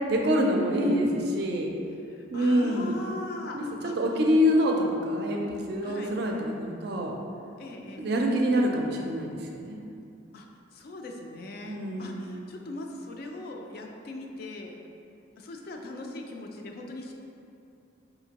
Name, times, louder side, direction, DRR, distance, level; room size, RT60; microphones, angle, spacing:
voice 1, 0.1-1.7 2.3-3.0 3.5-7.2 8.0-9.8 11.6-12.4, equal, 55° right, 1 dB, 0.4 m, -26 dB
voice 2, 2.0-3.6 3.8-3.9 5.8-6.2 7.6-8.1 10.3-10.5 10.7-14.8 15.4-17.1, left 2 dB, 50° left, 1 dB, 0.3 m, -40 dB
5.1 x 2.7 x 2.8 m, 2.6 s
head